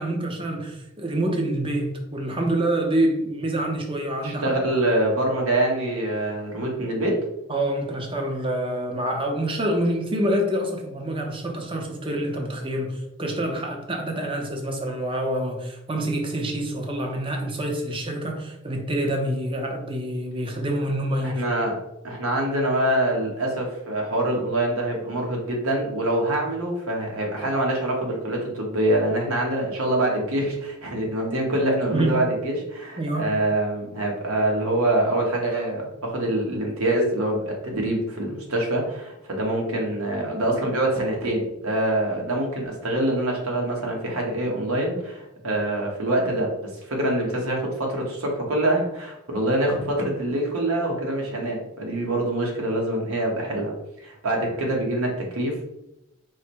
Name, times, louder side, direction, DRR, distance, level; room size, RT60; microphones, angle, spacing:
voice 1, 0.0-4.4 7.5-21.4 31.9-32.2 33.0-33.3, right 1 dB, 25° right, 0.6 m, -26 dB
voice 2, 4.2-7.2 21.2-53.7 54.0-55.6, right 1 dB, 75° right, 1.2 m, -25 dB
4.8 x 2.1 x 4.4 m
head